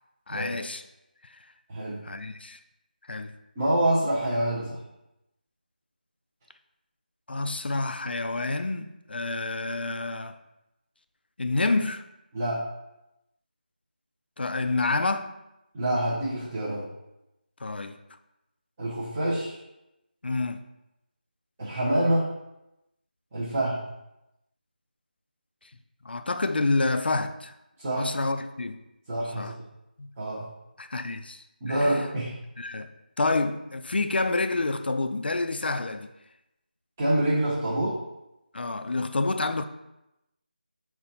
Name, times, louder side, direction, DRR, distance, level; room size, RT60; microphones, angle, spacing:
voice 1, 0.3-0.8 2.0-2.6 3.1-3.3 7.3-10.4 11.4-12.0 14.4-15.3 17.6-18.0 20.2-20.6 26.0-27.5 28.0-28.8 29.4-29.5 30.0-30.1 30.8-32.0 32.6-32.9 33.2-36.1 38.5-39.6, left 3 dB, 80° left, 9 dB, 0.3 m, -28 dB
voice 2, 3.6-4.8 12.3-12.6 15.7-16.9 18.8-19.5 21.6-22.3 23.3-23.8 27.8-28.1 29.1-29.6 30.2-30.5 31.6-32.3 37.0-38.0, right 1 dB, 10° right, -12 dB, 0.5 m, -26 dB
4.1 x 2.1 x 4.0 m, 0.90 s
figure-of-eight pair, 175°, 5 cm